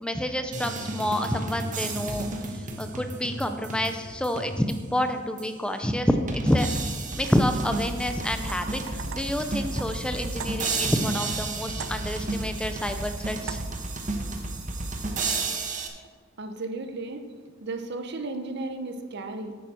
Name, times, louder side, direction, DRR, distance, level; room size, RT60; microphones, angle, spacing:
voice 1, 0.0-6.7 7.1-13.6, left 1 dB, 5° left, 7 dB, 0.4 m, -28 dB
sound 1, 0.5-4.9 5.4-5.5 6.3-15.9, right 3 dB, 40° right, 1.1 m, -32 dB
Bowed string instrument, 7.7-12.5, left 5 dB, 60° left, 0.8 m, -46 dB
sound 2, 8.4-11.0 11.8-12.4 13.5-14.0, right 7 dB, 75° right, 0.5 m, -42 dB
voice 2, 16.4-17.3 17.6-19.6, right 2 dB, 55° right, 6 dB, 0.9 m, -34 dB
9.3 x 9.0 x 4.3 m, 1.6 s
head